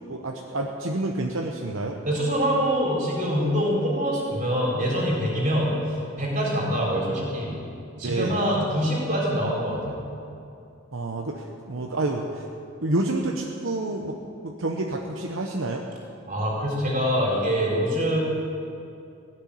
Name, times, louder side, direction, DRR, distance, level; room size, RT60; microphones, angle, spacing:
voice 1, 0.1-2.0 8.0-8.4 10.9-12.5 12.8-14.1 14.4-15.8, right 2 dB, 70° right, 1 dB, 0.9 m, -28 dB
voice 2, 2.0-5.7 6.2-7.6 8.0-10.0 16.3-18.2, equal, 35° right, -3 dB, 4.0 m, -24 dB
16.0 x 6.7 x 10.0 m, 2.6 s
head